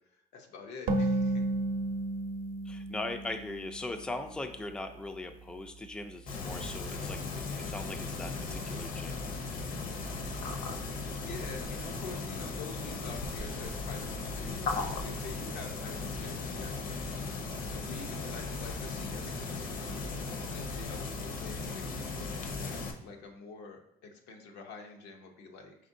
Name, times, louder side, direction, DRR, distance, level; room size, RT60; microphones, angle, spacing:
voice 1, 0.1-1.5 11.1-14.7 14.9-17.1 17.7-25.7, left 4 dB, 90° left, 2 dB, 0.8 m, -47 dB
sound 1, 0.9-4.4, right 2 dB, 60° right, 0.6 m, -32 dB
voice 2, 2.6-9.2, left 2 dB, 5° left, 7 dB, 0.3 m, -40 dB
sound 2, 6.3-22.9, left 3 dB, 55° left, 0.7 m, -37 dB
5.1 x 3.5 x 2.6 m, 0.80 s
cardioid pair, 110°, 17 cm